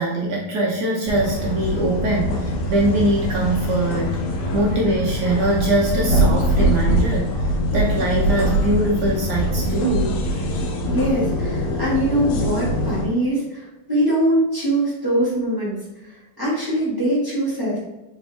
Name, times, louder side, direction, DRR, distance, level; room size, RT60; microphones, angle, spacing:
voice 1, 0.0-4.2 4.5-7.3 7.7-10.1, right 1 dB, 80° right, -2 dB, 0.9 m, -22 dB
sound 1, 1.1-13.1, equal, 85° left, 1.6 m, -23 dB
voice 2, 10.9-17.8, right 1 dB, 15° right, -9 dB, 0.9 m, -22 dB
3.3 x 3.3 x 3.2 m, 1.0 s
omnidirectional pair, 2.4 m